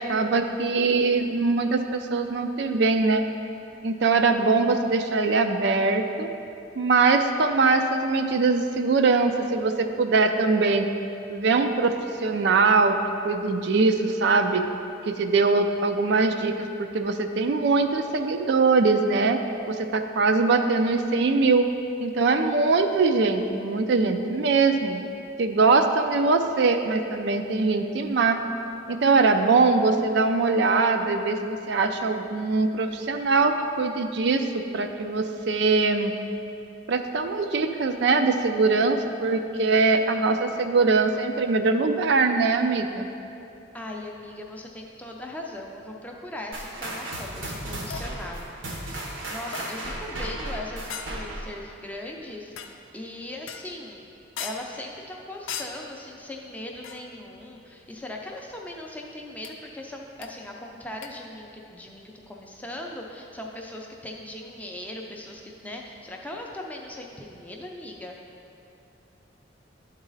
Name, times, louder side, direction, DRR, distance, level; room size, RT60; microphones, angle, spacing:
voice 1, 0.0-3.2 3.8-6.3 6.8-10.9 11.3-13.0 13.2-14.6 15.1-19.4 19.7-21.7 22.0-25.0 25.4-28.4 28.9-36.1 36.9-43.1, right 3 dB, 60° right, 6 dB, 0.4 m, -22 dB
voice 2, 43.7-54.0 54.4-68.2, left 1 dB, 10° left, 0 dB, 0.4 m, -39 dB
sound 1, 46.5-51.6, right 1 dB, 85° right, 1.2 m, -35 dB
sound 2, 47.9-48.2 49.5-50.0 50.9-51.4 52.6-52.9 53.5-53.8 54.4-54.8 55.5-55.9 56.8-57.2 59.4-59.5 60.2-60.3 61.0-61.1, left 7 dB, 85° left, 0.4 m, -38 dB
10.5 x 4.0 x 4.0 m, 2.7 s
head